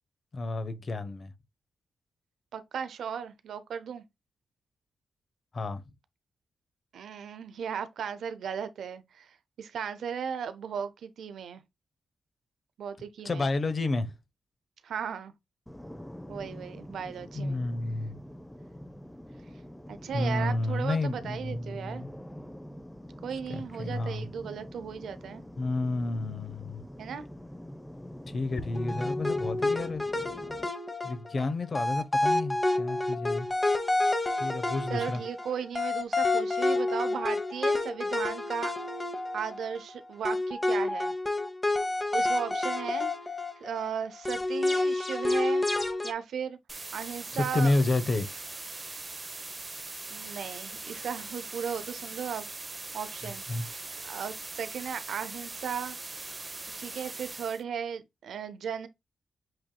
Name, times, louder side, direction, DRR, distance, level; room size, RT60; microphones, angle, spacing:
voice 1, 0.3-1.3 5.5-5.8 13.2-14.1 17.3-18.2 20.1-22.1 23.5-24.3 25.6-26.8 28.3-30.0 31.0-33.5 34.4-35.2 47.3-48.3 53.5-53.7, left 2 dB, 55° left, 0.9 m, -30 dB
voice 2, 2.5-4.0 6.9-11.6 12.8-13.5 14.8-15.3 16.3-17.6 19.9-22.0 23.2-25.4 27.0-27.2 34.9-38.7 39.3-41.1 42.1-43.1 43.6-45.6 46.0-46.6 46.9-47.7 50.1-52.5 52.9-53.4 54.0-56.0 56.8-58.9, right 7 dB, 80° right, 0.6 m, -36 dB
sound 1, 15.7-30.7, equal, 10° left, 0.7 m, -45 dB
sound 2, 28.7-39.9 40.2-43.9 44.2-46.1, left 2 dB, 25° left, 1.1 m, -29 dB
sound 3, 46.7-57.6, right 3 dB, 35° right, 0.9 m, -41 dB
7.8 x 2.8 x 2.3 m
cardioid pair, 50°, 0 cm